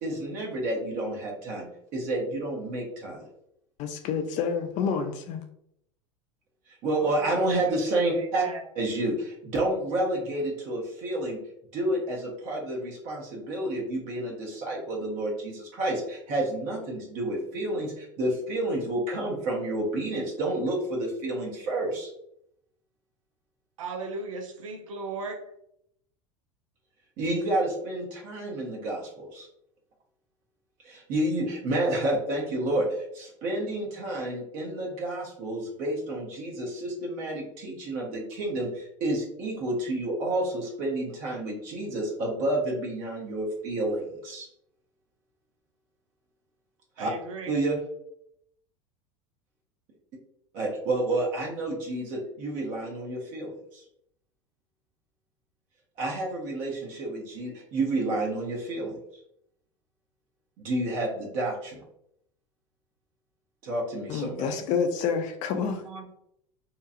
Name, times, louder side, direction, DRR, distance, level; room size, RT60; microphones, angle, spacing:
voice 1, 0.0-3.3 6.8-8.5 8.7-11.4 11.7-22.1 27.2-29.5 30.8-44.5 47.0-47.1 47.5-47.8 50.5-53.8 56.0-59.0 60.6-61.8 63.6-64.5, right 1 dB, 50° right, -2 dB, 0.9 m, -30 dB
voice 2, 3.8-5.4 64.1-65.8, left 6 dB, 45° left, 6 dB, 0.5 m, -28 dB
voice 3, 7.0-7.4 7.7-7.8 8.1-8.6 23.8-25.4 47.0-47.5 65.9-66.1, right 3 dB, 80° right, 4 dB, 0.6 m, -37 dB
2.9 x 2.3 x 2.6 m, 0.75 s
hypercardioid pair, 80°, 17 cm